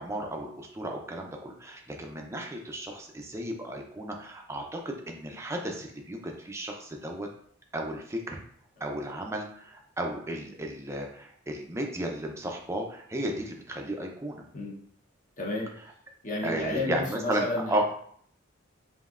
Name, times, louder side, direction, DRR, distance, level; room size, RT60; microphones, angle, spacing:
voice 1, 0.0-7.3 7.7-8.4 8.8-14.4 16.4-17.8, right 1 dB, 15° right, 2 dB, 0.5 m, -34 dB
voice 2, 15.4-15.7 16.2-17.8, left 2 dB, 40° left, -2 dB, 0.9 m, -31 dB
5.2 x 2.7 x 2.4 m, 0.63 s
head